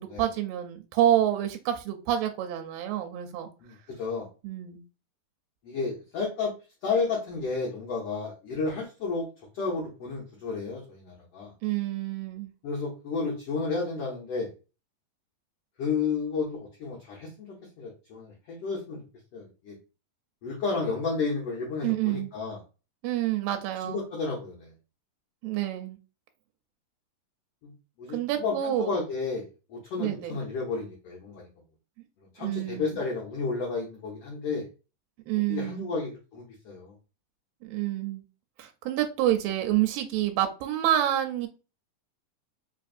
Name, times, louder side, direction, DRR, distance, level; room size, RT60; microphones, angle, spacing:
voice 1, 0.0-3.5 4.4-4.8 11.6-12.5 21.8-22.3 23.0-24.0 25.4-26.0 28.1-29.0 30.0-30.3 32.4-33.0 35.3-35.9 37.6-38.2 38.6-41.5, right 12 dB, 80° right, 4 dB, 2.2 m, -28 dB
voice 2, 3.6-4.3 5.6-6.5 6.8-9.3 9.5-11.5 12.6-14.5 15.8-19.0 19.3-19.8 20.4-22.6 23.8-24.7 27.6-27.7 28.0-31.5 32.3-34.7 35.5-36.9, left 4 dB, 85° left, -1 dB, 1.3 m, -32 dB
5.2 x 2.6 x 2.4 m, 0.33 s
omnidirectional pair, 4.0 m